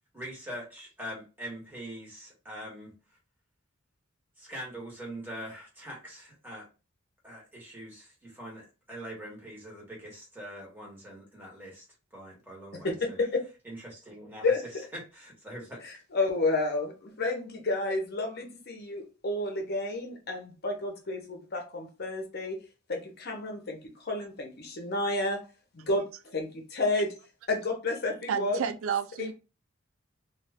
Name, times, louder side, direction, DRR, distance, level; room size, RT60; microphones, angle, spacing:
voice 1, 0.1-2.9 4.4-6.7 7.2-11.9 12.1-13.2 13.6-14.5 15.1-15.8, equal, 10° right, 1.2 m, -43 dB
voice 2, 12.7-13.4 14.4-14.6 15.8-22.6 22.9-25.4 25.7-27.1 27.5-28.7 29.2-29.3, left 2 dB, 50° left, 0.7 m, -31 dB
voice 3, 28.3-29.3, right 7 dB, 75° right, 0.4 m, -31 dB
2.4 x 2.3 x 3.3 m
head